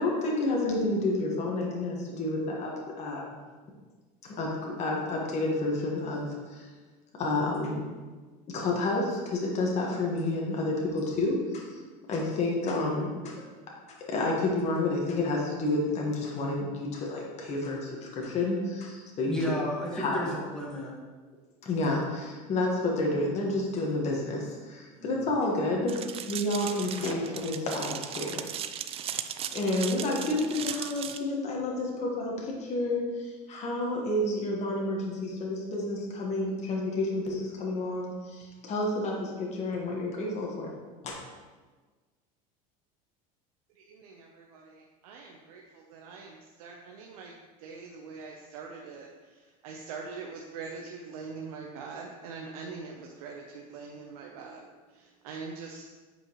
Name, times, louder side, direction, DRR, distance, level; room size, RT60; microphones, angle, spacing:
voice 1, 0.0-3.4 4.2-6.7 7.2-7.8 8.5-11.7 12.1-13.4 14.0-19.5 19.9-20.2 21.6-28.4 29.5-40.7 41.0-41.1, left 2 dB, 40° left, -2 dB, 1.5 m, -30 dB
voice 2, 18.9-20.9 24.9-25.3, equal, 5° left, -4 dB, 1.8 m, -34 dB
sound 1, 25.9-31.2, right 9 dB, 35° right, 0.4 m, -37 dB
voice 3, 43.8-55.8, right 4 dB, 85° right, 0 dB, 0.7 m, -43 dB
7.9 x 5.2 x 3.1 m, 1.3 s
supercardioid pair, 115°, 18 cm